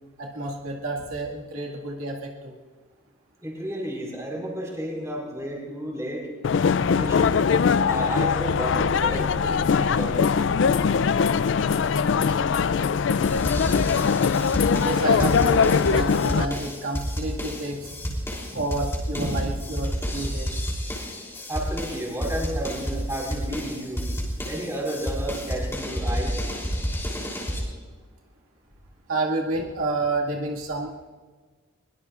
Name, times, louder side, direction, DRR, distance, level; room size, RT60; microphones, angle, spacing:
voice 1, 0.2-2.5 8.7-8.8 11.2-11.3 14.2-14.3 14.8-18.2 18.5-20.6 29.1-31.1, right 2 dB, 85° right, -2 dB, 2.0 m, -30 dB
voice 2, 3.4-6.3 6.8-7.3 7.9-10.3 21.5-24.0 24.4-26.5, right 1 dB, 15° right, -2 dB, 4.7 m, -32 dB
sound 1, 6.4-16.5, left 6 dB, 60° left, 0.3 m, -21 dB
sound 2, 13.2-27.6, equal, 10° left, 3.3 m, -30 dB
22.5 x 21.5 x 2.5 m, 1.4 s
head